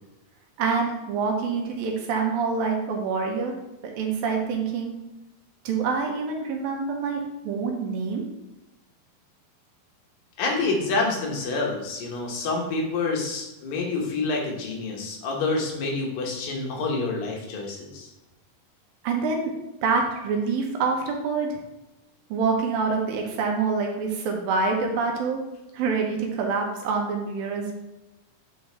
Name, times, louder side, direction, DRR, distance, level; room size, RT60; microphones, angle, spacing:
voice 1, 0.6-3.6 4.0-4.9 5.7-8.3 19.0-19.5 19.8-21.6 22.3-25.4 25.7-27.7, right 4 dB, 80° right, 1 dB, 2.5 m, -26 dB
voice 2, 10.4-18.1, left 3 dB, 70° left, -1 dB, 2.8 m, -27 dB
7.8 x 4.6 x 3.4 m, 0.99 s
omnidirectional pair, 4.4 m